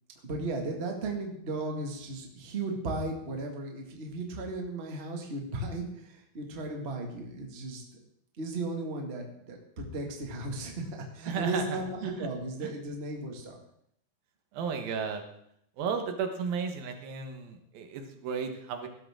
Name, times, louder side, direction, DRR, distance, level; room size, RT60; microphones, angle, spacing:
voice 1, 0.2-7.8 8.4-13.6, right 2 dB, 25° right, 1 dB, 1.4 m, -35 dB
voice 2, 11.2-12.3 12.6-12.7 14.5-15.2 15.8-18.9, right 6 dB, 75° right, 5 dB, 3.1 m, -34 dB
17.0 x 12.5 x 3.7 m, 0.72 s
omnidirectional pair, 4.2 m